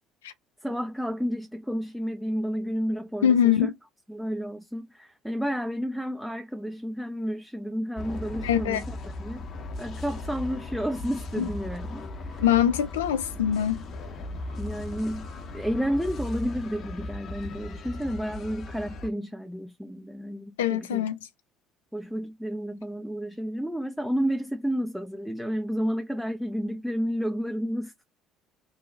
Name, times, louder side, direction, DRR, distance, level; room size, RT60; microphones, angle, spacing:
voice 1, 0.6-3.7 4.1-9.5 9.8-12.5 14.6-15.3 15.5-21.1 21.9-28.0, equal, ahead, 0.5 m, -31 dB
voice 2, 3.2-3.7 8.4-8.8 11.4-11.5 12.4-13.8 20.6-21.2, left 10 dB, 75° left, 0.5 m, -23 dB
sound 1, 8.0-19.1, left 2 dB, 45° left, 0.8 m, -37 dB
3.1 x 2.3 x 4.0 m
figure-of-eight pair, 55°, 0 cm